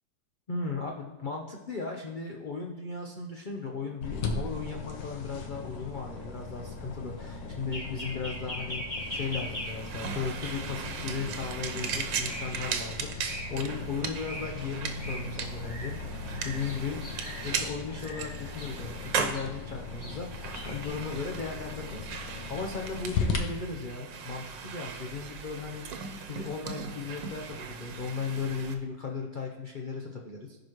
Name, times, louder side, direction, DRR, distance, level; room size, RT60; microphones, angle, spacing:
voice 1, 0.5-17.1 17.4-26.0 26.3-30.6, left 4 dB, 55° left, 0 dB, 0.5 m, -36 dB
sound 1, 4.0-23.4, left 5 dB, 90° left, 1.7 m, -39 dB
sound 2, 6.3-20.9, equal, 20° left, 2.2 m, -42 dB
sound 3, 9.0-28.7, right 6 dB, 80° right, 1.5 m, -38 dB
15.0 x 5.1 x 3.1 m, 1.2 s
omnidirectional pair, 2.0 m